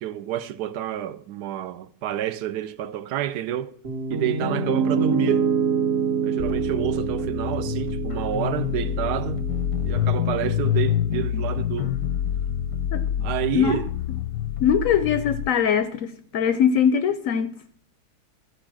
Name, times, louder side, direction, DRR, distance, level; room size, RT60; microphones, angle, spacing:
voice 1, 0.0-3.7 4.1-5.5 6.2-9.5 9.8-12.0 13.2-13.9, right 11 dB, 80° right, 1.1 m, -29 dB
Piano, 3.8-11.9, right 5 dB, 55° right, 1.8 m, -27 dB
sound 1, 6.4-15.5, left 10 dB, 85° left, 1.2 m, -27 dB
voice 2, 14.6-17.5, left 7 dB, 70° left, 0.8 m, -21 dB
13.0 x 4.6 x 6.1 m
omnidirectional pair, 1.8 m